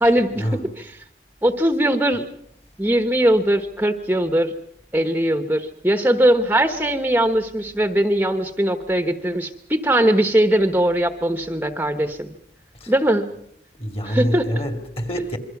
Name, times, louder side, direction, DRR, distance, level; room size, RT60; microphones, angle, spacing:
voice 1, 0.0-0.5 0.8-1.0 1.4-2.3 2.8-4.5 4.9-12.3 12.9-13.3 14.0-14.5, right 1 dB, 10° right, 1.1 m, -20 dB
voice 2, 13.8-15.4, equal, 35° left, 2.6 m, -26 dB
27.0 x 23.5 x 6.0 m
head